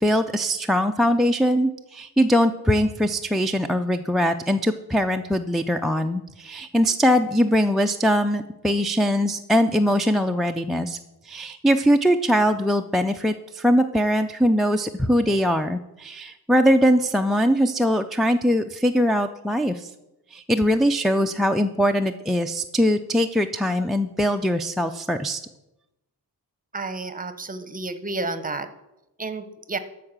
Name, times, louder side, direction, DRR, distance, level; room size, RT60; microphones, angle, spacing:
voice 1, 0.0-11.0 11.2-19.9 20.3-25.4, equal, ahead, 4 dB, 0.3 m, -21 dB
voice 2, 26.7-28.7 29.2-29.8, right 3 dB, 25° right, 12 dB, 0.8 m, -31 dB
13.0 x 4.7 x 7.3 m, 0.94 s
wide cardioid pair, 135°, 36 cm